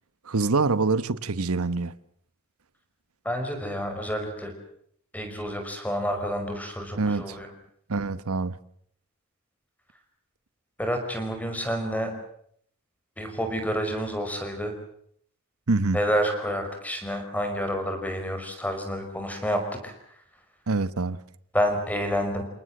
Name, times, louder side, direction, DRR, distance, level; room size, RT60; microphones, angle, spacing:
voice 1, 0.3-2.0 7.0-7.4 7.9-8.6 15.7-16.0 20.7-21.2, right 3 dB, 75° right, 1.0 m, -25 dB
voice 2, 3.3-4.5 5.1-7.5 10.8-12.1 13.2-14.7 15.9-19.9 21.5-22.4, equal, 5° left, 5.4 m, -29 dB
29.5 x 19.0 x 7.8 m
head